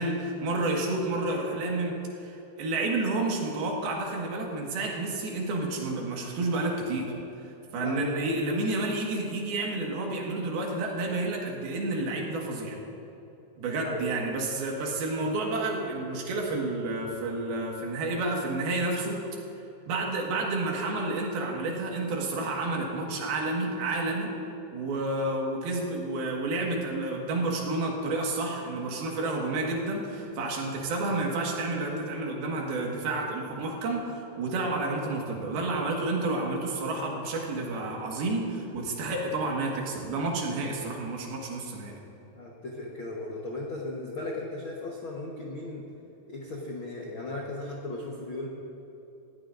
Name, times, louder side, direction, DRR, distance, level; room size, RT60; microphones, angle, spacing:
voice 1, 0.0-7.1 7.4-12.8 13.6-19.2 19.9-24.3 24.7-42.0, right 2 dB, 90° right, -1 dB, 3.7 m, -30 dB
voice 2, 7.8-8.2 13.8-14.0 42.3-45.8 46.3-48.5, left 2 dB, 65° left, -3 dB, 1.2 m, -36 dB
20.0 x 14.5 x 2.6 m, 3.0 s
omnidirectional pair, 4.2 m